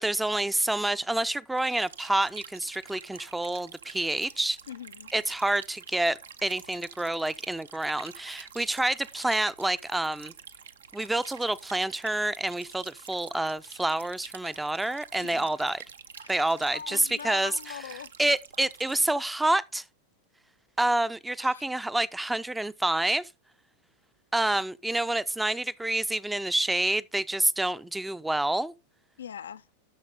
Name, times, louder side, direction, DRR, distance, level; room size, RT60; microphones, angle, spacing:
voice 1, 0.0-4.6 5.1-10.3 10.9-15.8 16.3-17.8 18.2-19.8 20.8-23.3 24.3-28.7, right 1 dB, 5° right, 0.5 m, -28 dB
sound 1, 1.6-19.1, right 7 dB, 70° right, 0.6 m, -48 dB
voice 2, 4.7-5.1 15.2-15.5 16.2-16.3 16.7-18.1 21.4-21.6 29.2-29.6, left 8 dB, 65° left, 0.4 m, -41 dB
11.5 x 6.4 x 3.6 m
figure-of-eight pair, 90°, 0 cm